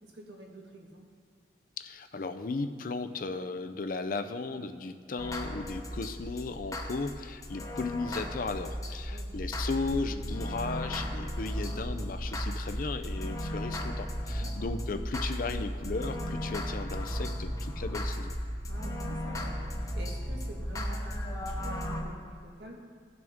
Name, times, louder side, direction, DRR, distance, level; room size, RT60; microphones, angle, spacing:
voice 1, 0.0-1.1 9.1-9.9 14.3-14.7 18.7-22.8, right 1 dB, 80° right, 0 dB, 1.6 m, -48 dB
voice 2, 1.8-18.4, left 3 dB, 50° left, 9 dB, 0.5 m, -36 dB
sound 1, 5.2-22.0, equal, 20° left, 0.9 m, -35 dB
17.0 x 6.0 x 3.6 m, 2.1 s
head